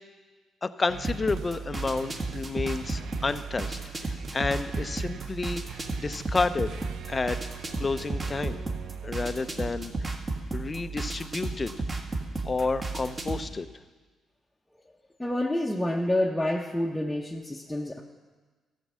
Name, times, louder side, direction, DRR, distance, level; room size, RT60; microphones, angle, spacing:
voice 1, 0.6-7.4 7.8-8.6 9.0-10.2 10.5-11.7 12.4-13.7, left 3 dB, 30° left, 11 dB, 0.5 m, -30 dB
sound 1, 0.9-13.5, right 3 dB, 30° right, 1.5 m, -34 dB
sound 2, 0.9-1.6 1.8-2.5 2.8-9.1, right 8 dB, 70° right, 0.5 m, -45 dB
voice 2, 15.2-18.0, left 1 dB, 5° left, -2 dB, 0.8 m, -28 dB
14.0 x 5.2 x 7.4 m, 1.3 s
cardioid pair, 90°, 0 cm